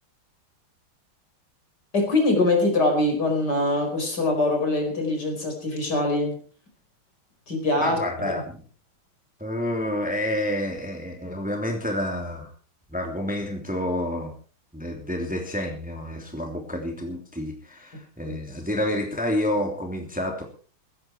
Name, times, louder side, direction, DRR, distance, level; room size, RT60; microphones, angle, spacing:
voice 1, 1.9-6.4 7.5-8.3 18.2-18.4, left 2 dB, 50° left, 4 dB, 5.3 m, -23 dB
voice 2, 7.8-8.6 9.4-12.5 12.9-14.3 14.7-20.4, left 1 dB, 5° right, 2 dB, 2.8 m, -29 dB
16.0 x 15.0 x 4.5 m, 0.40 s
omnidirectional pair, 2.3 m